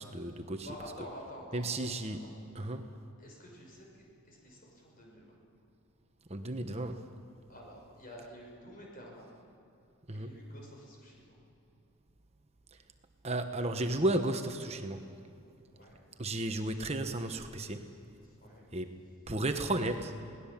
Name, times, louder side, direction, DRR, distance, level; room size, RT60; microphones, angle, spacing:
voice 1, 0.0-0.7 1.5-2.2 2.5-2.9 6.3-7.0 10.1-10.4 13.2-15.2 16.2-17.9 18.7-18.9 19.3-20.2, right 1 dB, 30° right, 6 dB, 1.1 m, -33 dB
voice 2, 0.6-2.8 3.2-5.4 7.5-9.3 10.1-11.4 15.7-16.1 18.2-18.7, equal, 40° left, -1 dB, 5.7 m, -50 dB
22.5 x 18.5 x 7.3 m, 2.6 s
head